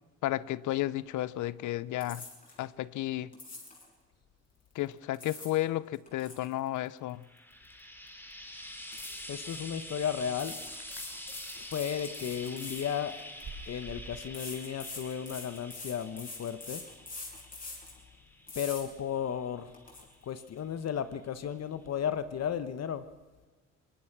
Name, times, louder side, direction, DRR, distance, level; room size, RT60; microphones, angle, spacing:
voice 1, 0.2-2.3 2.6-3.3 4.7-7.2, left 15 dB, 80° left, 0.7 m, -32 dB
sound 1, 2.0-2.6 3.3-3.9 4.9-5.6 5.9-7.8 8.1-8.3 8.9-9.6 10.3-13.5 14.3-18.0 18.5-18.8 19.3-19.4 19.7-20.0, left 3 dB, 30° left, 7.2 m, -44 dB
Frying (food), 7.1-20.5 21.5-21.6, left 1 dB, 5° left, 3.1 m, -47 dB
voice 2, 9.3-10.6 11.6-13.2 13.7-16.8 18.5-19.7 20.3-23.0, left 8 dB, 55° left, 1.2 m, -34 dB
sound 2, 9.8-14.9, right 3 dB, 50° right, 5.2 m, -50 dB
23.5 x 20.5 x 6.1 m
cardioid pair, 90°, 30 cm